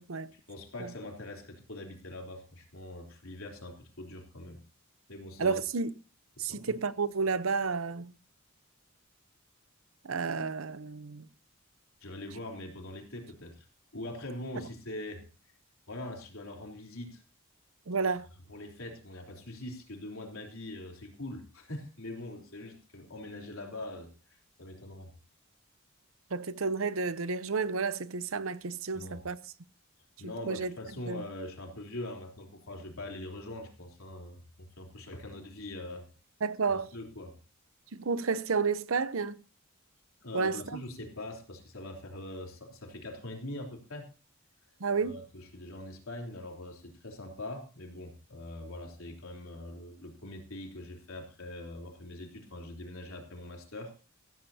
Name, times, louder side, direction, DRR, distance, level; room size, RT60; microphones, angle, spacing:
voice 1, 0.3-4.6 5.1-5.6 6.4-6.7 12.0-13.7 13.9-15.2 15.9-17.2 18.5-25.1 28.9-29.2 30.2-36.1 36.7-37.3 40.2-44.1 45.0-53.9, left 1 dB, 85° left, 3.5 m, -43 dB
voice 2, 5.4-5.9 6.4-8.1 10.0-11.3 17.9-18.3 26.3-29.4 30.5-30.7 31.1-31.2 36.4-36.9 37.9-39.4 40.3-40.8 44.8-45.2, right 4 dB, 80° right, 0.8 m, -31 dB
15.5 x 15.0 x 2.8 m
head